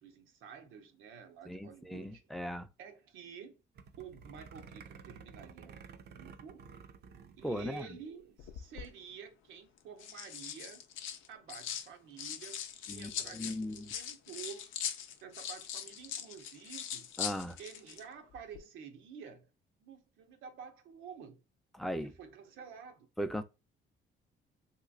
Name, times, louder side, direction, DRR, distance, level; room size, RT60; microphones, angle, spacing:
voice 1, 0.0-2.3 2.8-3.6 4.0-6.6 7.4-10.9 11.3-12.6 12.9-14.7 15.2-17.1 17.6-19.5 19.8-21.4 22.0-23.1, right 7 dB, 90° right, 0.7 m, -50 dB
voice 2, 1.5-2.7 7.4-7.9 12.9-13.9 17.2-17.6 21.8-22.1 23.2-23.4, equal, ahead, 0.4 m, -38 dB
sound 1, 3.7-7.9 8.2-8.3 8.5-8.8, right 5 dB, 55° right, 0.5 m, -52 dB
sound 2, 8.4-8.9 9.8-11.9 12.2-18.0 18.3-18.6, left 9 dB, 85° left, 0.5 m, -41 dB
3.1 x 2.9 x 2.4 m
cardioid pair, 90°, 20 cm